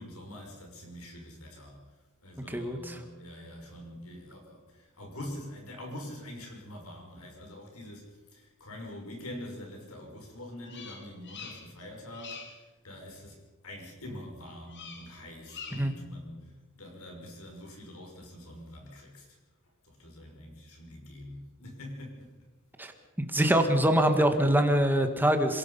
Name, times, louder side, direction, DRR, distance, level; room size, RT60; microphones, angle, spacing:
voice 1, 0.0-1.8 2.2-13.4 13.6-19.4 19.8-22.3, left 1 dB, 75° left, 2 dB, 5.9 m, -45 dB
voice 2, 2.5-3.0 15.7-15.9 22.8-22.9 23.2-25.6, right 1 dB, 10° right, 6 dB, 1.9 m, -24 dB
Bird vocalization bird call bird song, 10.7-11.8 12.1-12.6 14.7-15.1 15.4-16.0, left 5 dB, 55° left, 3.0 m, -45 dB
26.5 x 17.5 x 5.7 m, 1.2 s
head